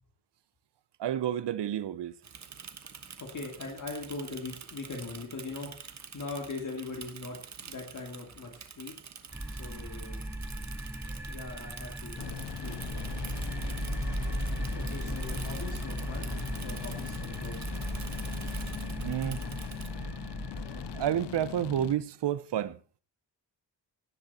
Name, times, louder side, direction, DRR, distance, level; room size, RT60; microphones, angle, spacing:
voice 1, 1.0-2.1 19.0-19.4 20.7-22.8, right 10 dB, 70° right, 0.8 m, -30 dB
Bicycle / Mechanisms, 2.2-19.9, right 6 dB, 40° right, 1.3 m, -47 dB
voice 2, 3.2-5.7 6.1-8.9 9.5-10.2 11.3-13.1 14.7-16.3 16.6-17.6, left 3 dB, 45° left, 2.5 m, -41 dB
sound 1, 9.3-21.1, right 1 dB, 5° right, 0.8 m, -36 dB
sound 2, 12.2-22.0, left 13 dB, 75° left, 0.6 m, -41 dB
17.0 x 11.0 x 4.2 m
wide cardioid pair, 180°, 42 cm